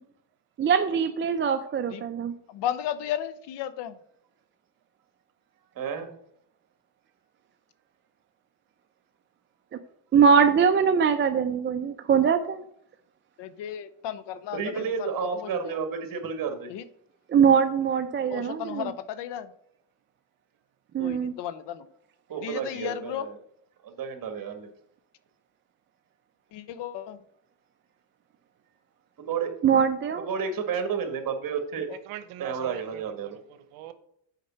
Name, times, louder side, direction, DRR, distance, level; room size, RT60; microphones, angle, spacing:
voice 1, 0.6-2.3 10.1-12.6 17.3-18.9 20.9-21.3 29.6-30.3, right 6 dB, 25° right, 0.5 m, -22 dB
voice 2, 2.5-3.9 13.4-14.9 15.4-15.8 16.7-16.8 18.3-19.5 21.0-21.8 22.4-23.3 26.5-27.2 31.9-32.0, left 10 dB, 60° left, 0.8 m, -34 dB
voice 3, 5.8-6.1 14.5-16.7 22.3-23.4 24.0-24.7 29.3-29.5 30.2-31.9 32.4-33.4, right 6 dB, 45° right, 1.8 m, -31 dB
voice 4, 32.1-33.9, right 12 dB, 75° right, 1.0 m, -43 dB
6.5 x 5.0 x 5.8 m
cardioid pair, 105°, 48 cm